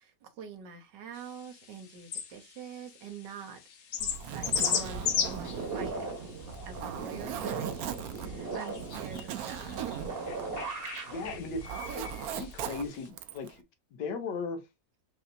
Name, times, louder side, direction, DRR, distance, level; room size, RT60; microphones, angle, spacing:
voice 1, 0.0-9.9, right 6 dB, 90° right, 1.5 m, -46 dB
sound 1, 1.1-13.1, left 7 dB, 60° left, 1.0 m, -38 dB
sound 2, 4.0-12.8, right 3 dB, 40° right, 1.1 m, -39 dB
Zipper (clothing), 4.0-11.1 11.4-13.5, right 10 dB, 70° right, 1.0 m, -40 dB
voice 2, 11.0-11.7 11.9-13.6 13.9-14.6, left 4 dB, 85° left, 1.5 m, -37 dB
5.6 x 2.7 x 2.6 m
omnidirectional pair, 1.8 m